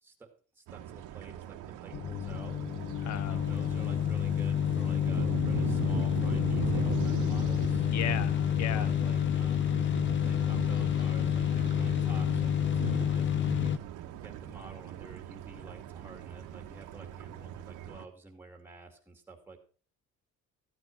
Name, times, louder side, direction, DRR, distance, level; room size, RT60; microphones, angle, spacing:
voice 1, 0.0-7.9 8.6-19.6, right 3 dB, 5° right, 2.4 m, -51 dB
sound 1, 0.7-18.1, right 10 dB, 80° right, 1.5 m, -45 dB
sound 2, 1.9-13.8, left 10 dB, 40° left, 0.6 m, -29 dB
voice 2, 3.0-3.4 7.9-8.9, left 10 dB, 60° left, 1.1 m, -36 dB
sound 3, 3.4-16.2 16.5-17.2, right 15 dB, 55° right, 0.6 m, -40 dB
14.5 x 8.9 x 4.7 m
cardioid pair, 160°, 31 cm